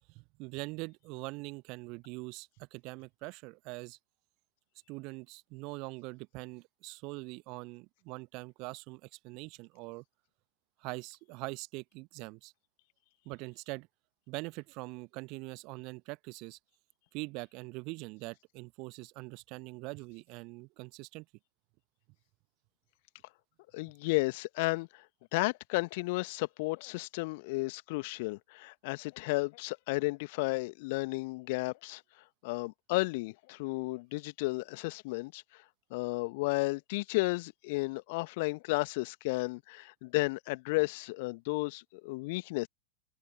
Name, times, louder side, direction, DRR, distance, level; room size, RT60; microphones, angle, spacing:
voice 1, 0.1-4.0 4.9-10.0 10.8-12.5 13.2-13.9 14.3-16.6 17.1-21.2, right 26 dB, 40° right, 1.0 m, -43 dB
voice 2, 23.7-25.0 25.3-32.0 32.4-35.6 35.9-42.7, left 25 dB, 50° left, 1.5 m, -33 dB
figure-of-eight pair, 90°, 0 cm